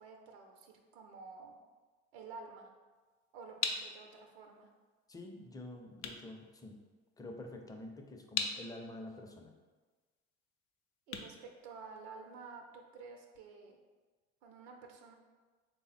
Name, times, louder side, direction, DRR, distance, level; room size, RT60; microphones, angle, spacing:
voice 1, 0.0-1.6 2.1-2.7 3.3-4.7 11.1-13.8 14.4-15.1, right 4 dB, 85° right, 3 dB, 0.5 m, -51 dB
sound 1, 3.0-12.4, left 6 dB, 70° left, 0.5 m, -43 dB
voice 2, 5.1-6.8 7.2-9.5, left 1 dB, 10° left, 3 dB, 0.5 m, -48 dB
3.5 x 2.0 x 4.0 m, 1.3 s
supercardioid pair, 80°, 31 cm